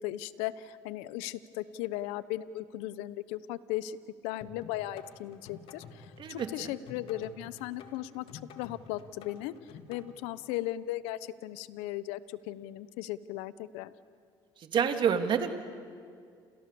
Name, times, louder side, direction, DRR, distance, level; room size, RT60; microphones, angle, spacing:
voice 1, 0.0-4.0 4.2-8.2 8.6-13.9, left 14 dB, 80° left, 16 dB, 0.9 m, -37 dB
sound 1, 4.4-10.0, left 6 dB, 60° left, 3.1 m, -50 dB
voice 2, 6.2-6.7 14.6-15.5, right 7 dB, 50° right, 6 dB, 2.9 m, -28 dB
29.5 x 28.5 x 7.0 m, 2.2 s
supercardioid pair, 80°, 10 cm